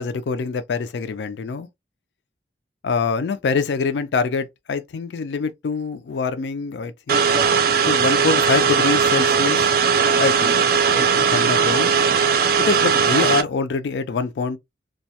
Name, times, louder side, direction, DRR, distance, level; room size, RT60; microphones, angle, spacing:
voice 1, 0.0-1.7 2.8-7.5 7.9-9.7 10.2-11.9 12.6-14.6, left 4 dB, 70° left, 0.4 m, -25 dB
sound 1, 7.1-13.4, right 6 dB, 55° right, 0.4 m, -18 dB
2.3 x 2.1 x 2.7 m
head